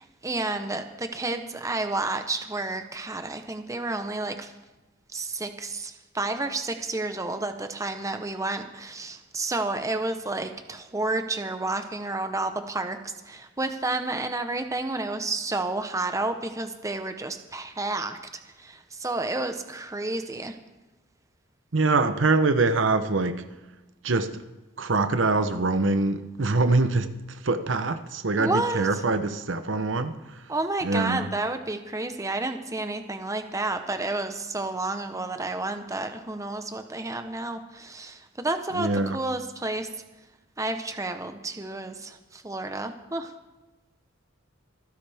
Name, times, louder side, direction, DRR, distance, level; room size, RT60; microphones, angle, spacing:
voice 1, 0.0-4.5 5.1-20.6 28.4-29.0 30.5-39.9 40.6-43.3, right 2 dB, 15° right, 0.9 m, -31 dB
voice 2, 21.7-23.5 24.0-24.3 24.8-27.1 27.4-30.1 30.8-31.2 38.7-39.2, right 3 dB, 80° right, 0.9 m, -24 dB
25.5 x 10.0 x 3.5 m
head